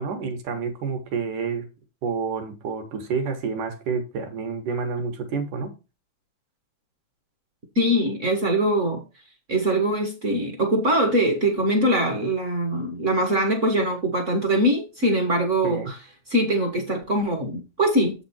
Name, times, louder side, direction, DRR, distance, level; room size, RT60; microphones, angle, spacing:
voice 1, 0.0-1.7 2.0-5.7 15.6-15.9, right 5 dB, 75° right, 2.9 m, -29 dB
voice 2, 7.7-9.0 9.5-15.9 16.3-18.2, right 1 dB, 55° right, 0.8 m, -22 dB
7.5 x 6.0 x 4.3 m
omnidirectional pair, 3.6 m